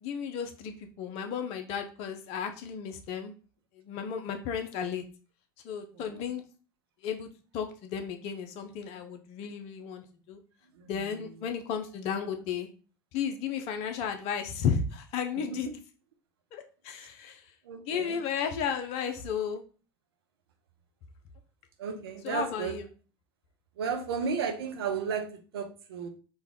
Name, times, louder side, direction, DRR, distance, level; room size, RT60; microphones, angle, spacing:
voice 1, 0.0-3.3 3.8-5.0 5.6-6.4 7.0-7.3 7.5-10.4 10.9-12.7 13.1-15.7 16.5-17.5 17.9-19.6 22.2-22.8, left 7 dB, 60° left, 6 dB, 0.6 m, -33 dB
voice 2, 15.4-15.7 17.6-18.2 21.8-22.8 23.8-26.1, right 6 dB, 85° right, 6 dB, 0.7 m, -34 dB
4.1 x 2.3 x 3.5 m, 0.37 s
hypercardioid pair, 80°, 12 cm